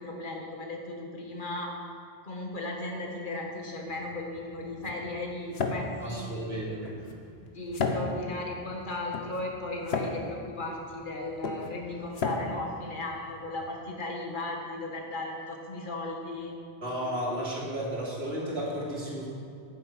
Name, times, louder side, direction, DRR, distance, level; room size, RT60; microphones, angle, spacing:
voice 1, 0.0-1.8 2.2-6.8 7.4-16.5, left 2 dB, 50° left, 0 dB, 1.8 m, -36 dB
sound 1, 3.9-13.7, left 4 dB, 80° left, 1.2 m, -35 dB
voice 2, 6.0-6.9 16.8-19.3, equal, 80° right, -5 dB, 2.9 m, -33 dB
9.7 x 9.3 x 6.0 m, 2.5 s
omnidirectional pair, 1.1 m